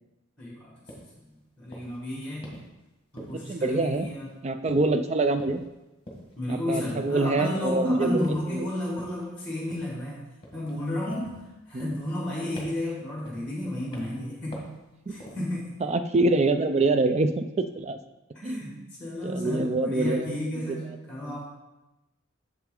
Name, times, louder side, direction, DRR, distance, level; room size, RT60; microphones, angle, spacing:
voice 1, 0.4-0.7 1.6-2.5 3.1-4.3 6.3-10.2 10.5-14.6 15.1-15.8 18.3-18.7 19.0-21.4, left 1 dB, 5° left, -5 dB, 1.6 m, -32 dB
sound 1, 0.9-1.1 1.7-2.0 2.4-2.7 3.2-3.6 3.9-4.4 4.7-5.0 5.4-5.7 6.1-6.3 6.8-7.1 7.5-7.8 8.2-8.6 9.0-9.3 9.7-10.0 10.4-10.8 11.1-11.4 11.8-12.3 12.6-12.9 13.2-13.6 13.9-14.2 14.5-14.8 15.2-15.5, equal, 25° left, 1.5 m, -45 dB
voice 2, 3.2-4.1 4.4-5.6 6.5-8.2 8.5-8.7 11.7-12.0 15.1-15.2 15.8-18.0 18.4-18.9 19.2-20.8, right 2 dB, 30° right, 9 dB, 0.3 m, -25 dB
7.3 x 5.9 x 3.8 m, 1.0 s
head